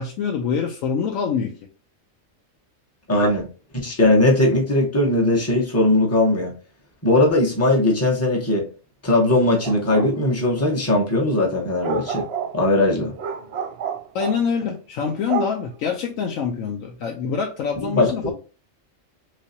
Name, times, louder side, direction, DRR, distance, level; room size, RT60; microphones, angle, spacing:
voice 1, 0.0-1.6 14.1-18.3, left 6 dB, 80° left, 1.0 m, -25 dB
voice 2, 3.1-3.5 3.7-6.5 7.0-8.7 9.0-12.2 12.5-13.1 17.9-18.3, left 1 dB, 15° left, 0.8 m, -19 dB
sound 1, 9.6-10.1 11.8-14.4 15.3-15.7, right 6 dB, 60° right, 0.7 m, -29 dB
3.2 x 3.2 x 2.7 m
omnidirectional pair, 1.4 m